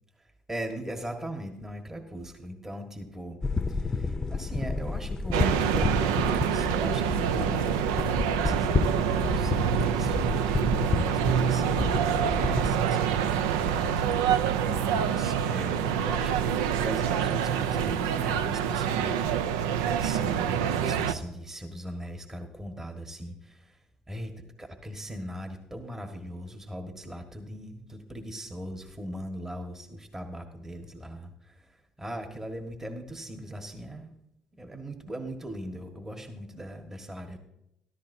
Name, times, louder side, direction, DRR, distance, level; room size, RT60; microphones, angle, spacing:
voice 1, 0.5-3.4 3.7-7.9 8.3-34.1 34.6-37.4, equal, 20° right, 4 dB, 1.6 m, -40 dB
sound 1, 3.4-12.8, left 3 dB, 25° left, 0.7 m, -30 dB
sound 2, 5.3-21.1, right 8 dB, 85° right, 0.5 m, -26 dB
13.5 x 13.5 x 2.7 m, 0.81 s
hypercardioid pair, 60°, 2 cm